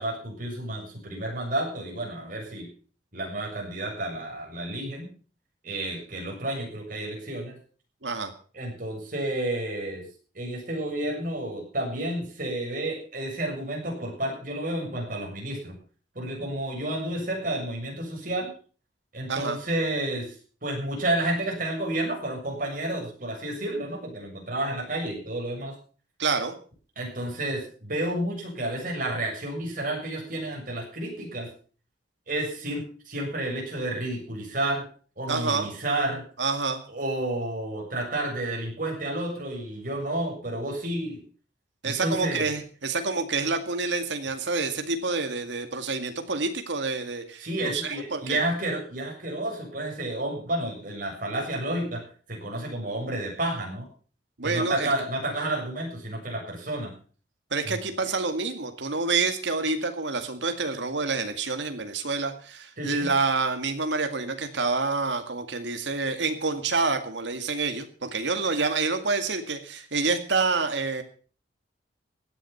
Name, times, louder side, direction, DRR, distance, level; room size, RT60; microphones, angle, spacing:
voice 1, 0.0-2.7 3.1-5.1 5.6-7.6 8.5-10.0 10.3-15.8 16.2-18.5 19.1-20.3 20.6-25.8 27.0-31.5 32.3-34.9 35.2-36.2 36.9-41.2 41.8-42.5 47.4-52.0 52.3-53.9 54.4-56.9 57.7-57.8 62.8-63.1, right 1 dB, 50° right, -1 dB, 7.1 m, -31 dB
voice 2, 26.2-26.6 35.3-35.7 36.4-36.8 41.8-48.4 54.4-54.9 57.5-71.0, right 4 dB, 85° right, 6 dB, 2.1 m, -28 dB
16.5 x 10.5 x 5.8 m, 0.40 s
head